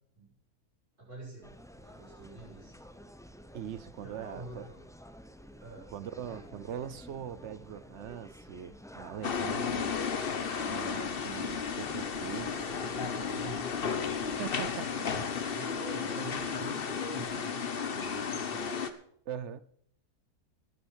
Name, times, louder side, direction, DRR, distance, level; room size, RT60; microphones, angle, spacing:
voice 1, 1.0-2.8 4.0-4.8 5.6-6.4 12.8-14.0 14.9-18.7, right 2 dB, 40° right, -10 dB, 7.2 m, -46 dB
sound 1, 1.4-14.7, equal, 5° left, 0.3 m, -51 dB
voice 2, 3.5-4.6 5.9-10.0 10.6-12.7 14.4-14.9 19.3-19.6, right 9 dB, 55° right, 16 dB, 0.9 m, -41 dB
sound 2, 9.2-18.9, left 6 dB, 40° left, 1.0 m, -33 dB
12.0 x 10.0 x 6.3 m, 0.66 s
omnidirectional pair, 1.6 m